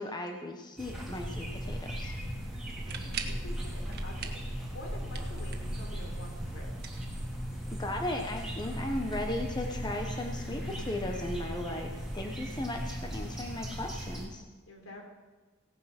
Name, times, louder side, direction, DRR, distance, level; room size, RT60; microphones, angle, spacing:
voice 1, 0.0-2.1 7.8-14.4, left 1 dB, 20° left, 3 dB, 1.0 m, -36 dB
sound 1, 0.8-14.3, equal, 5° right, 3.2 m, -40 dB
sound 2, 0.9-14.2, equal, 55° left, 3.1 m, -40 dB
voice 2, 2.6-4.4 4.7-6.8 14.7-15.0, left 1 dB, 75° left, 0 dB, 3.9 m, -47 dB
sound 3, 2.7-3.4 3.9-4.5 4.8-5.8 6.7-7.6, right 7 dB, 50° right, 1.4 m, -42 dB
17.0 x 9.3 x 5.9 m, 1.3 s
head